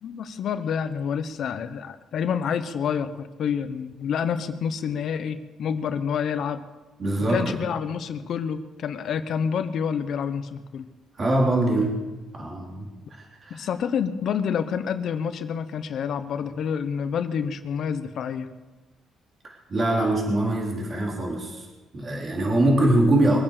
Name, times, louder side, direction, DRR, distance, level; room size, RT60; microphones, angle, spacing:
voice 1, 0.0-6.6 7.3-10.9 13.5-18.5, left 7 dB, 65° left, 10 dB, 1.0 m, -28 dB
voice 2, 7.0-7.5 11.2-12.0 12.4-13.7 19.4-21.7 21.9-23.4, right 1 dB, 40° right, -2 dB, 4.2 m, -23 dB
23.0 x 8.9 x 6.7 m, 1.2 s
cardioid pair, 90°, 0 cm